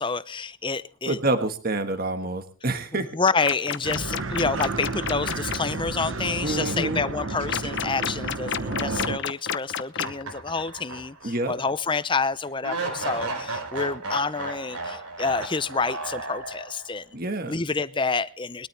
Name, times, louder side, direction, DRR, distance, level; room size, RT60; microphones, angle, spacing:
voice 1, 0.0-1.2 3.1-17.0 17.5-18.7, left 4 dB, 20° left, 15 dB, 0.6 m, -28 dB
voice 2, 1.1-3.1 6.4-7.0 11.2-11.5 17.1-17.6, right 2 dB, 40° right, 7 dB, 1.6 m, -27 dB
sound 1, 3.3-5.6 7.5-10.2, left 7 dB, 50° left, 0.9 m, -29 dB
sound 2, 3.8-9.2, right 3 dB, 60° right, 1.1 m, -31 dB
sound 3, 10.0-11.3 11.7-11.8 12.6-16.9, right 2 dB, 90° right, 4.7 m, -34 dB
21.5 x 13.0 x 3.4 m, 0.36 s
head